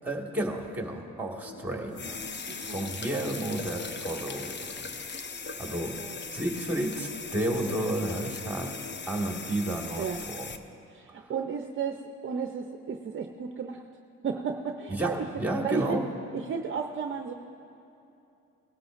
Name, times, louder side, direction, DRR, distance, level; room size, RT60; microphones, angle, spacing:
voice 1, 0.0-2.3 2.6-4.9 5.4-5.9 6.3-8.7 9.1-10.5 14.9-16.1, right 1 dB, 5° right, 0 dB, 1.9 m, -32 dB
sound 1, 1.3-5.7 6.1-6.2 6.9-9.0, left 4 dB, 65° left, 3.2 m, -47 dB
sound 2, 1.9-10.6, left 4 dB, 35° left, 0.7 m, -39 dB
voice 2, 2.5-2.9 6.0-6.2 10.0-10.2 10.9-13.8 14.2-15.3 15.6-16.0 16.3-17.3, right 6 dB, 40° right, 4 dB, 0.6 m, -33 dB
19.0 x 13.0 x 2.6 m, 2.9 s
cardioid pair, 90°, 30 cm